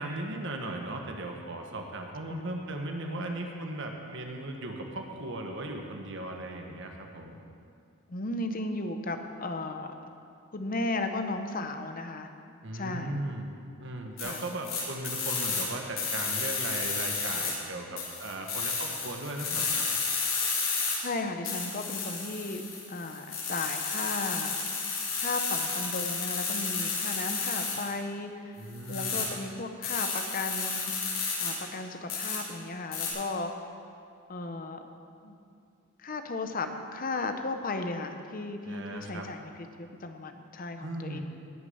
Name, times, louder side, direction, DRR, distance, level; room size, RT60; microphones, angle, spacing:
voice 1, 0.0-7.4 12.6-19.9 28.5-29.3 38.6-39.3 40.8-41.2, right 1 dB, 60° right, 2 dB, 1.4 m, -37 dB
voice 2, 8.1-9.9 10.5-12.3 12.7-13.2 14.2-14.4 21.0-22.6 22.9-24.6 25.2-28.6 28.9-30.9 31.4-33.5 34.3-34.8 35.2-35.3 36.0-39.5 39.8-41.2, left 2 dB, 40° left, 7 dB, 0.8 m, -35 dB
sound 1, 14.2-15.6 16.0-17.5 18.0-20.9 21.4-27.9 28.7-29.2 29.8-31.5 32.1-32.4 32.9-33.1, left 5 dB, 65° left, 3.8 m, -32 dB
19.5 x 6.7 x 5.6 m, 2.4 s
head